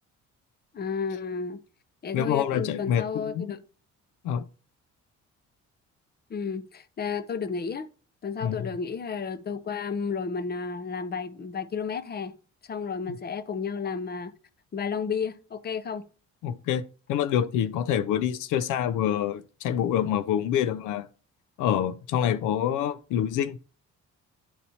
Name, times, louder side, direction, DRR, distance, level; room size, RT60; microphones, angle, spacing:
voice 1, 0.7-1.6 2.0-3.6 6.3-7.9 8.2-12.3 12.7-14.3 14.7-16.0, left 5 dB, 35° left, 0.7 m, -32 dB
voice 2, 2.1-3.5 4.2-4.4 8.4-8.7 16.4-16.8 17.1-21.1 21.6-23.6, left 9 dB, 85° left, 0.5 m, -26 dB
11.0 x 4.1 x 2.8 m
cardioid pair, 90°, 30 cm